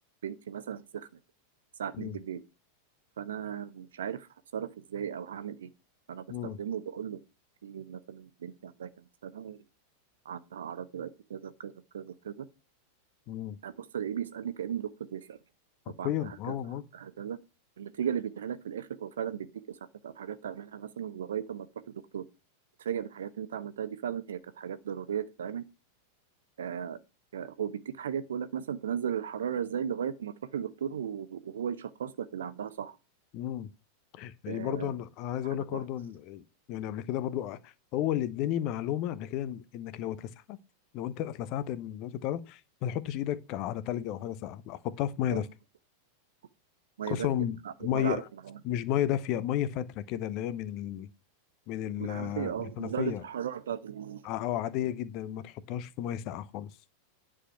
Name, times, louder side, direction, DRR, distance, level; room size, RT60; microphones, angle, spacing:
voice 1, 0.2-1.1 1.8-2.4 3.2-4.3 4.5-5.7 6.1-7.2 7.6-8.9 9.2-9.6 10.3-12.5 13.6-15.4 16.0-16.5 16.9-17.4 17.8-19.8 20.0-21.7 22.1-22.2 22.8-25.6 26.6-27.0 27.3-32.9 34.5-34.9 35.7-35.8 45.3-45.4 47.0-47.3 47.8-48.2 52.0-54.2, right 8 dB, 65° right, 0.8 m, -36 dB
voice 2, 13.3-13.6 16.0-16.8 33.3-33.7 34.1-40.6 40.9-45.5 47.1-48.3 48.6-51.1 51.7-53.2 54.2-56.7, left 11 dB, 40° left, 0.8 m, -33 dB
10.0 x 5.0 x 5.9 m
figure-of-eight pair, 90°, 0 cm